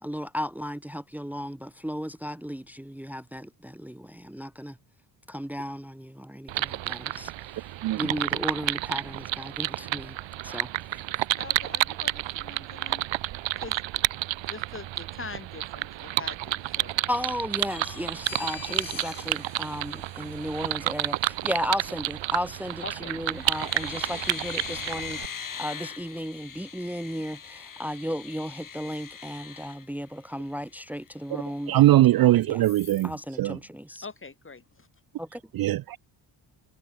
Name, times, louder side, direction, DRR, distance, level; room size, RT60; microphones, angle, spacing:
voice 1, 0.0-4.8 5.3-10.2 10.4-11.0 17.1-32.6 33.0-34.1 35.2-35.4, equal, 5° right, 1.4 m, -35 dB
sound 1, 6.5-25.3, right 15 dB, 80° right, 1.2 m, -30 dB
voice 2, 11.4-13.1 13.6-17.0 22.8-23.2 34.0-34.9, left 4 dB, 25° left, 2.9 m, -43 dB
sound 2, 17.7-20.7 22.5-22.9 23.2-30.5 30.9-31.0 31.3-32.2 32.6-33.1, left 7 dB, 45° left, 4.3 m, -41 dB
voice 3, 31.7-33.1 33.4-33.6 35.5-36.0, right 15 dB, 55° right, 0.5 m, -20 dB
cardioid pair, 80°, 45 cm